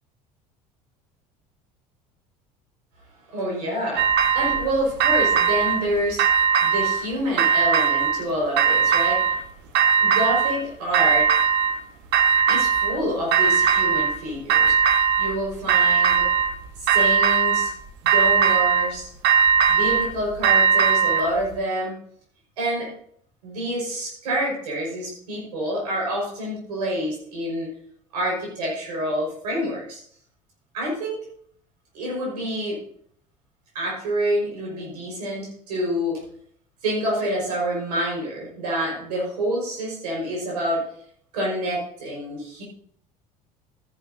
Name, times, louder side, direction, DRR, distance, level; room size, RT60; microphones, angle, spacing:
voice 1, 3.3-6.3 6.6-9.4 10.0-11.3 12.5-16.3 16.8-17.7 18.0-19.1 19.7-21.9 22.6-22.9 23.4-27.7 28.1-30.0 30.7-31.2 31.9-32.8 33.7-36.2 36.8-40.8 41.3-42.6, equal, 75° right, -3 dB, 5.3 m, -27 dB
sound 1, 4.0-4.7 5.0-5.9 6.2-7.0 7.4-8.2 8.6-9.4 9.7-10.6 10.9-11.8 12.1-13.0 13.3-14.2 14.5-15.4 15.7-16.5 16.9-17.7 18.1-18.9 19.2-21.3, right 7 dB, 55° right, 1.2 m, -19 dB
14.0 x 10.5 x 2.8 m, 0.63 s
hypercardioid pair, 65°, 21 cm